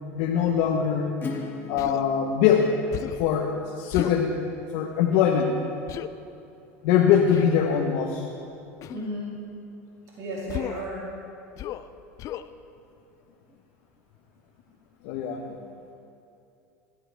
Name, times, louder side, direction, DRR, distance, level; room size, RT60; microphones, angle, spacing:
voice 1, 0.1-1.1 1.7-2.7 3.0-4.3 4.7-5.5 6.8-8.2 15.0-15.4, left 8 dB, 70° left, 0 dB, 1.1 m, -22 dB
Acoustic guitar / Strum, 1.2-6.7, left 4 dB, 25° left, 1.8 m, -42 dB
Human voice, 1.8-2.0 2.9-3.3 3.9-4.2 5.9-6.1 7.3-7.6 8.8-9.1 10.5-10.9 11.6-11.9 12.2-12.5, left 13 dB, 50° left, 0.5 m, -34 dB
voice 2, 8.9-9.4 10.2-11.0 15.5-15.6, equal, 50° right, -5 dB, 2.7 m, -34 dB
16.0 x 12.5 x 3.5 m, 2.6 s
supercardioid pair, 100°, 7 cm